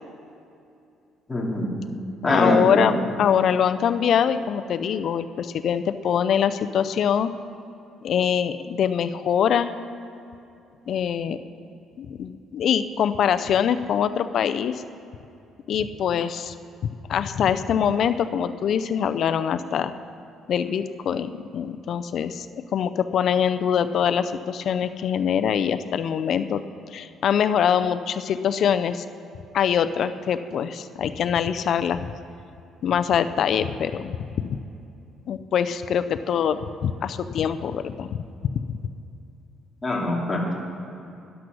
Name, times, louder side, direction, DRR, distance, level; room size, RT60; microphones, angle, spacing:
voice 1, 1.3-1.7 2.2-2.9 39.8-40.4, left 1 dB, 15° left, -3 dB, 2.6 m, -23 dB
voice 2, 2.2-7.3 8.0-9.7 10.9-11.4 12.0-14.8 15.7-16.5 17.1-19.9 20.5-22.5 22.7-26.6 26.9-29.0 29.5-32.0 32.8-34.6 35.3-38.1, left 8 dB, 55° left, 11 dB, 0.5 m, -23 dB
12.0 x 11.5 x 6.2 m, 2.6 s
cardioid pair, 130°, 0 cm